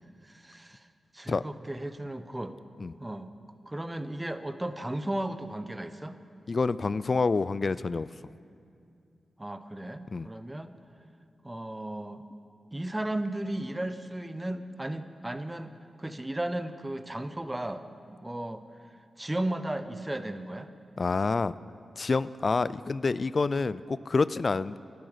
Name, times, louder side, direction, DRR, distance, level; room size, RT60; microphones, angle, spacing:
voice 1, 0.2-0.9 1.1-2.5 3.0-3.3 3.7-6.2 9.4-10.8 11.4-12.2 12.7-17.8 18.1-18.6 19.2-20.7, right 1 dB, 20° right, 11 dB, 0.9 m, -35 dB
voice 2, 6.5-8.1 10.1-10.3 21.0-21.5 22.0-24.8, left 4 dB, 50° left, 17 dB, 0.3 m, -27 dB
11.5 x 11.0 x 8.0 m, 2.4 s
cardioid pair, 45°, 0 cm